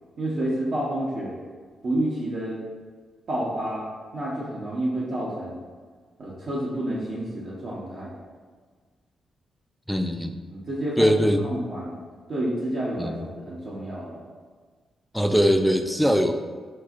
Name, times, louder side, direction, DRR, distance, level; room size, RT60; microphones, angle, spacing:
voice 1, 0.2-1.4 1.8-2.6 3.3-3.8 4.1-5.6 6.2-8.1 10.5-11.2 11.4-12.0 12.3-14.2, right 1 dB, 55° right, -7 dB, 0.8 m, -29 dB
voice 2, 9.9-10.4 11.0-11.4 13.0-13.3 15.1-16.3, equal, ahead, 6 dB, 0.3 m, -21 dB
4.3 x 4.2 x 2.4 m, 1.5 s
cardioid pair, 95°, 0 cm